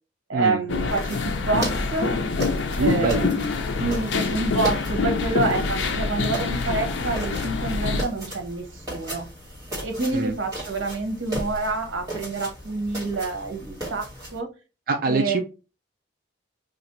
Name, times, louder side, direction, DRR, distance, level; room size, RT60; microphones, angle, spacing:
voice 1, 0.3-2.1 2.8-3.5 3.8-9.3 9.8-14.5 15.0-15.4, right 3 dB, 80° right, 0.9 m, -27 dB
sound 1, 0.7-8.0, left 4 dB, 70° left, 0.5 m, -26 dB
sound 2, 0.9-14.4, equal, 15° right, 1.6 m, -37 dB
voice 2, 2.8-3.3 10.1-10.3 14.9-15.4, right 3 dB, 45° right, 0.3 m, -24 dB
2.9 x 2.4 x 4.1 m
head